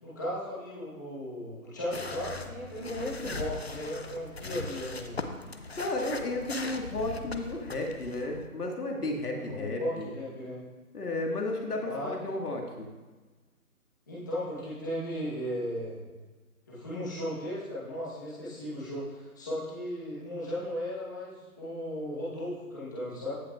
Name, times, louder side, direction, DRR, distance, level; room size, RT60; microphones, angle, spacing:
voice 1, 0.0-5.4 9.3-10.6 11.9-12.1 14.1-16.0 16.7-23.4, equal, 15° left, -10 dB, 1.1 m, -36 dB
sound 1, 1.9-8.5, left 3 dB, 45° left, 0.5 m, -40 dB
voice 2, 5.8-10.1 10.9-12.9, left 2 dB, 85° left, 1 dB, 1.8 m, -33 dB
15.5 x 5.5 x 2.4 m, 1.3 s
hypercardioid pair, 170°, 45 cm